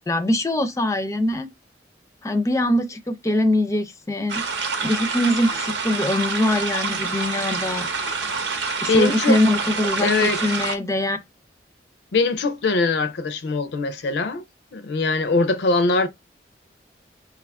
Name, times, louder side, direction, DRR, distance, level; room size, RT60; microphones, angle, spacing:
voice 1, 0.1-1.5 2.2-4.4 4.8-8.1 8.8-11.2, left 1 dB, 15° left, 0.4 m, -22 dB
sound 1, 4.3-10.8, right 4 dB, 80° right, 0.8 m, -27 dB
voice 2, 8.9-9.4 10.0-10.4 12.1-14.4 14.7-16.1, left 3 dB, 75° left, 0.4 m, -22 dB
4.6 x 2.3 x 3.4 m
head